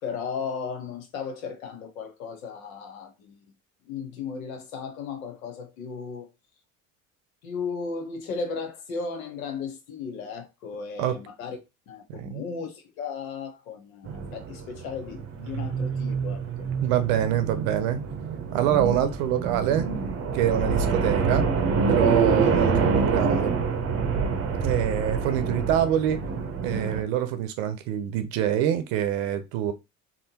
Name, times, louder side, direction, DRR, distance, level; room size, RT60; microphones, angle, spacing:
voice 1, 0.0-3.4 3.8-6.3 7.4-11.6 11.9-16.7, left 5 dB, 80° left, 0.9 m, -35 dB
sound 1, 14.0-27.0, right 5 dB, 35° right, 0.7 m, -26 dB
voice 2, 16.8-18.0 18.5-19.9 20.3-21.5 21.9-23.5 24.6-26.2 26.6-29.7, right 10 dB, 70° right, 0.7 m, -25 dB
3.6 x 2.1 x 2.8 m
hypercardioid pair, 65°, 41 cm